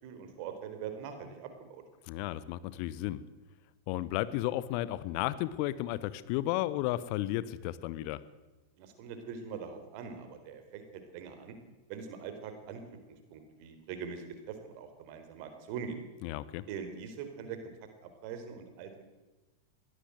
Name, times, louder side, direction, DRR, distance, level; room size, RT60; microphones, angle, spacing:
voice 1, 0.0-1.8 8.8-11.6 11.9-12.8 13.3-16.0 16.7-17.7 18.0-19.0, right 6 dB, 45° right, 8 dB, 4.0 m, -42 dB
voice 2, 2.0-3.2 3.9-8.2 16.2-16.7, left 15 dB, 45° left, 17 dB, 0.9 m, -33 dB
22.0 x 16.5 x 7.9 m, 1.1 s
figure-of-eight pair, 90°, 0 cm